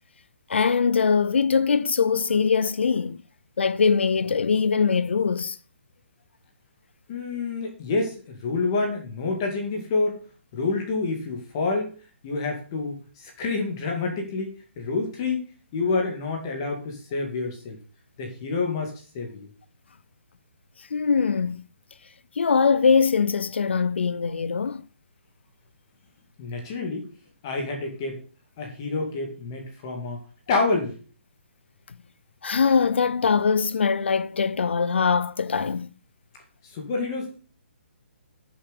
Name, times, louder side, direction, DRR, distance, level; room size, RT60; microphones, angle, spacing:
voice 1, 0.5-3.2 3.6-5.6 20.9-21.6 22.4-24.9 32.4-35.9, left 5 dB, 65° left, 0.6 m, -22 dB
voice 2, 7.1-10.2 10.5-11.9 12.2-13.0 13.2-17.8 18.2-19.5 26.4-27.1 27.4-28.2 28.6-30.2 30.5-31.0 36.7-37.4, left 3 dB, 20° left, 2.2 m, -28 dB
9.4 x 7.3 x 6.7 m
hypercardioid pair, 180°, 7 cm